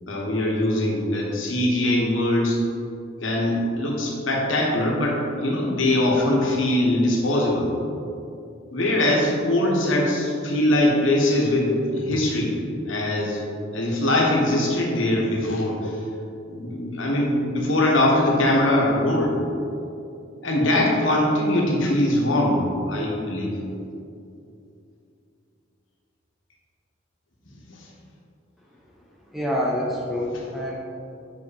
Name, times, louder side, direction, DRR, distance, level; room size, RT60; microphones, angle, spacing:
voice 1, 0.1-2.6 3.2-7.7 8.7-12.5 12.9-13.4 13.7-16.0 16.5-19.3 20.4-23.5, left 1 dB, 80° left, -2 dB, 1.4 m, -22 dB
voice 2, 29.3-30.7, equal, ahead, -4 dB, 0.8 m, -26 dB
6.1 x 5.6 x 4.3 m, 2.6 s
head